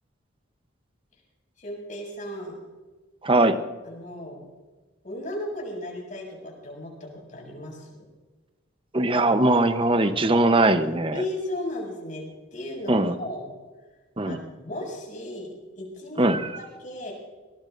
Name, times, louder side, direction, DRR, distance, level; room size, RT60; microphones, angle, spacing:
voice 1, 1.6-2.6 3.8-4.4 5.0-7.9 11.1-13.6 14.2-16.3 16.5-17.1, left 1 dB, 40° left, -1 dB, 6.7 m, -35 dB
voice 2, 3.2-3.6 8.9-11.2 12.9-13.1 14.2-14.4 16.2-16.6, right 2 dB, 25° right, 9 dB, 0.8 m, -21 dB
22.0 x 20.0 x 2.6 m, 1.3 s
head